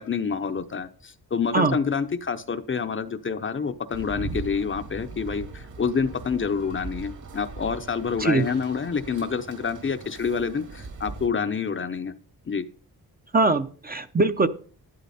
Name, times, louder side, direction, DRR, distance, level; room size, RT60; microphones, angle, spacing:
voice 1, 0.0-12.1 12.5-12.6, left 6 dB, 30° left, 9 dB, 0.7 m, -28 dB
sound 1, 3.9-11.3, right 3 dB, 50° right, 1.8 m, -39 dB
voice 2, 13.3-14.5, right 3 dB, 25° right, 9 dB, 0.7 m, -21 dB
12.0 x 11.5 x 4.2 m, 0.42 s
wide cardioid pair, 155°, 39 cm